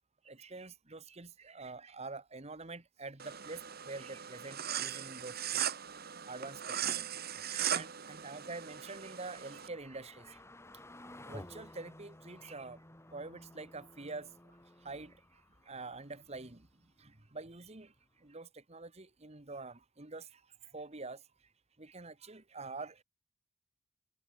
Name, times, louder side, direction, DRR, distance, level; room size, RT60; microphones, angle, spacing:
voice 1, 0.2-5.6 6.3-7.2 7.5-10.4 11.2-12.8 13.1-21.2 21.8-23.0, right 3 dB, 30° right, 1.4 m, -47 dB
sound 1, 3.2-9.7, right 10 dB, 45° right, 2.5 m, -38 dB
sound 2, 3.3-17.4 17.8-17.9 18.2-18.3, left 1 dB, 10° left, 2.5 m, -56 dB
head